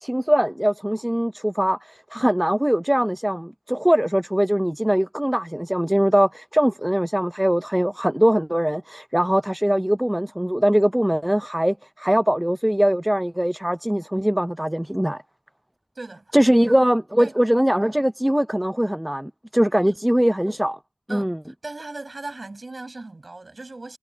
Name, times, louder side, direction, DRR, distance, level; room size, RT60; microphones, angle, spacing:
voice 1, 0.0-15.2 16.3-20.8 21.1-21.4, equal, 5° right, 0.4 m, -21 dB
voice 2, 15.9-16.5 17.2-17.3 19.9-20.0 21.1-21.3 21.6-24.0, right 2 dB, 35° right, 6.1 m, -37 dB
cardioid pair, 50°, 0 cm